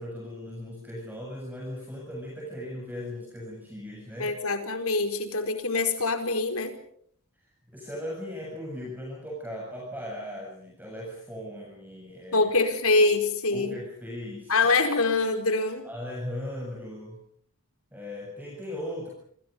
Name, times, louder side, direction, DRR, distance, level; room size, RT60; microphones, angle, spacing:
voice 1, 0.0-4.3 7.4-12.5 13.5-14.5 15.8-17.2 17.9-19.1, left 1 dB, 10° right, -2 dB, 7.5 m, -38 dB
voice 2, 4.2-6.7 12.3-13.8 14.5-15.8, left 3 dB, 75° left, 7 dB, 4.8 m, -24 dB
28.5 x 27.0 x 5.3 m, 0.64 s
head